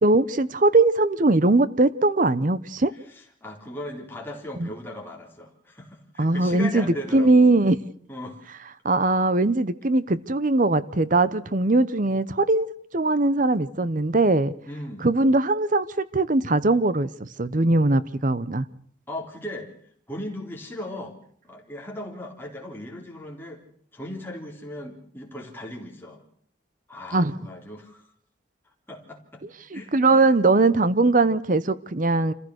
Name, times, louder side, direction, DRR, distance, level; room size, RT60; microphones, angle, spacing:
voice 1, 0.0-2.9 4.6-4.7 6.2-6.9 7.1-7.8 8.8-12.7 12.9-14.5 15.0-18.6 27.1-27.3 29.7-32.3, right 2 dB, 40° right, 16 dB, 0.8 m, -20 dB
voice 2, 2.9-7.5 8.1-8.4 14.6-15.1 19.1-19.7 20.1-21.2 21.4-23.6 23.9-26.2 26.9-28.1 28.9-29.4 29.7-30.3, left 1 dB, 10° left, -1 dB, 3.6 m, -37 dB
27.0 x 15.0 x 6.4 m, 0.62 s
head